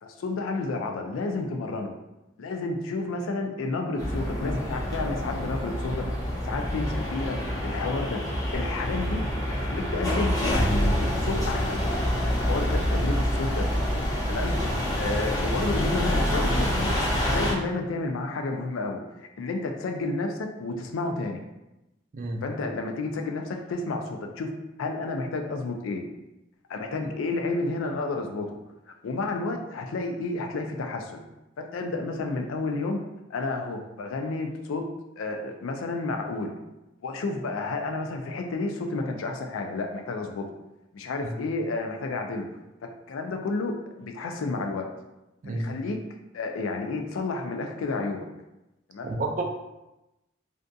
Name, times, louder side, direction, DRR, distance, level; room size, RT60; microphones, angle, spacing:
voice 1, 0.0-1.9 2.4-6.1 6.4-9.2 9.5-11.8 12.3-13.7 14.3-14.5 15.0-21.4 22.4-26.0 26.7-28.6 29.0-31.2 31.6-33.0 33.3-34.9 35.2-36.5 37.0-40.5 40.9-42.5 43.1-44.9 45.5-46.0 46.3-48.3 48.9-49.1, left 3 dB, 90° left, 3 dB, 0.4 m, -31 dB
sound 1, 4.0-17.5, equal, 20° left, 0.5 m, -27 dB
voice 2, 22.1-22.4 41.2-41.4 45.4-45.7 49.0-49.5, right 2 dB, 40° right, 2 dB, 0.3 m, -30 dB
2.5 x 2.3 x 2.5 m, 0.96 s
head